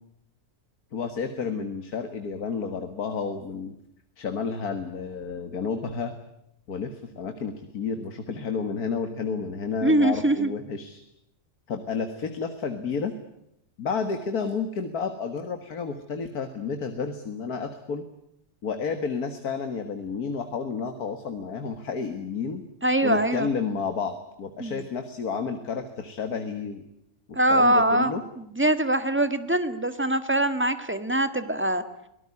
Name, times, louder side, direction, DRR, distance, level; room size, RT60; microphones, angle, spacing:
voice 1, 0.9-3.8 4.2-6.1 6.7-11.0 11.7-13.1 13.8-18.1 18.6-22.6 23.0-26.8 27.3-28.2, left 5 dB, 80° left, 8 dB, 2.2 m, -31 dB
voice 2, 9.8-10.5 22.8-23.5 24.6-24.8 27.3-31.8, right 1 dB, 10° right, 10 dB, 1.6 m, -23 dB
24.5 x 18.5 x 9.7 m, 0.80 s
omnidirectional pair, 1.6 m